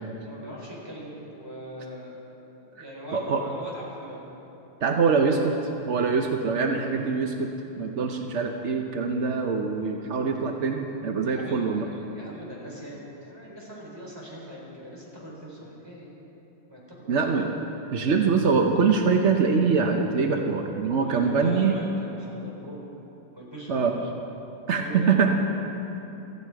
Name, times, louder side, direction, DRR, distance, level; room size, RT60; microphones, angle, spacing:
voice 1, 0.0-2.2 2.7-4.3 11.2-16.1 16.7-17.2 21.0-22.9 23.3-24.0 24.7-25.3, right 1 dB, 10° right, -4 dB, 4.0 m, -41 dB
voice 2, 4.8-5.5 5.9-7.5 7.8-11.9 17.1-17.5 17.9-21.8 23.7-24.0 24.7-25.3, right 5 dB, 70° right, 3 dB, 0.6 m, -24 dB
18.0 x 14.5 x 4.8 m, 3.0 s
omnidirectional pair, 2.4 m